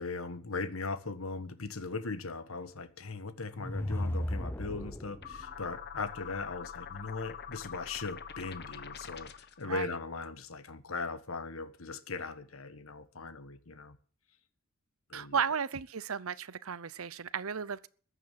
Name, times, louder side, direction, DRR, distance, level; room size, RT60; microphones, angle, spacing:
voice 1, 0.0-14.0 15.1-15.4, left 3 dB, 70° left, 1.4 m, -39 dB
sound 1, 3.4-5.4, left 1 dB, 10° left, 0.7 m, -35 dB
sound 2, 5.2-9.6, left 7 dB, 50° left, 1.2 m, -44 dB
voice 2, 9.6-10.0 15.1-17.9, right 7 dB, 75° right, 0.7 m, -34 dB
15.0 x 10.0 x 7.5 m
head